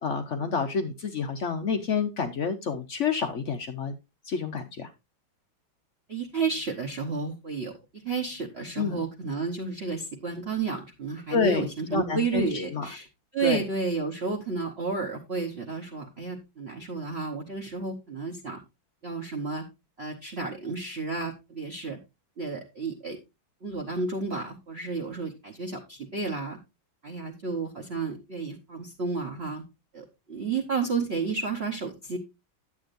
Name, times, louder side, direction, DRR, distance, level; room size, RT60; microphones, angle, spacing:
voice 1, 0.0-3.9 4.3-4.9 8.8-9.0 11.3-12.9 13.4-13.6, left 5 dB, 65° left, 8 dB, 0.7 m, -29 dB
voice 2, 6.1-13.1 13.3-18.6 19.0-19.6 20.0-22.0 22.4-23.2 23.6-26.6 27.0-29.6 29.9-32.2, right 4 dB, 40° right, 3 dB, 1.0 m, -31 dB
11.0 x 8.4 x 2.5 m, 0.24 s
omnidirectional pair, 2.2 m